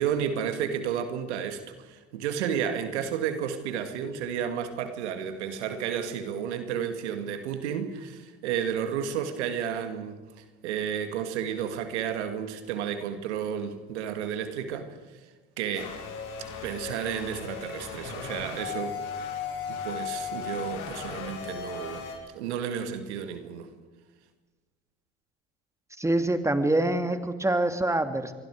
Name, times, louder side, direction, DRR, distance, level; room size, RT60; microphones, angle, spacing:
voice 1, 0.0-15.0 15.6-15.9 16.6-19.0 19.7-22.1 22.3-23.7, right 8 dB, 85° right, 8 dB, 2.2 m, -32 dB
sound 1, 15.7-22.2, left 6 dB, 65° left, 6.3 m, -36 dB
voice 2, 26.0-28.3, right 1 dB, 10° right, 8 dB, 2.5 m, -25 dB
28.0 x 24.0 x 4.9 m, 1.3 s
hypercardioid pair, 70°, 33 cm